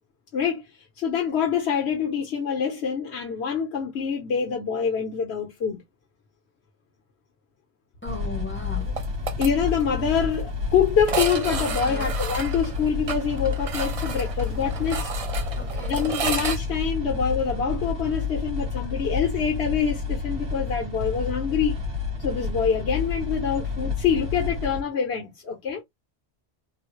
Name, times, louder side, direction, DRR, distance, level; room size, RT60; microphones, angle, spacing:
voice 1, 0.3-0.6 1.0-5.8 9.4-15.1 15.9-21.7 22.2-25.8, left 7 dB, 75° left, 1.2 m, -25 dB
voice 2, 8.0-9.0 11.9-12.1 15.6-16.0, left 3 dB, 15° left, 0.7 m, -36 dB
sound 1, 8.0-24.8, left 4 dB, 75° right, 1.9 m, -30 dB
sound 2, 9.0-9.5 9.8-9.9 10.2-10.3 11.0-16.6, right 5 dB, 45° right, 0.5 m, -31 dB
3.9 x 2.1 x 3.1 m
omnidirectional pair, 1.1 m